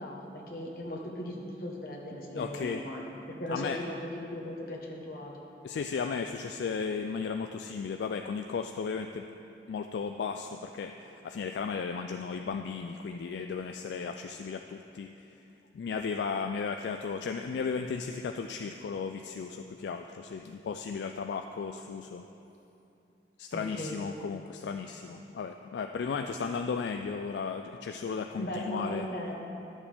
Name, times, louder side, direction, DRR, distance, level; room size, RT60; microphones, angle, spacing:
voice 1, 0.0-5.3 23.5-24.0 28.4-29.3, equal, 55° left, -1 dB, 1.2 m, -38 dB
voice 2, 2.3-2.8 3.5-3.8 5.6-9.2 9.7-15.1 15.7-22.3 23.4-29.1, left 5 dB, 75° left, 5 dB, 0.3 m, -35 dB
11.5 x 7.2 x 3.4 m, 2.8 s
head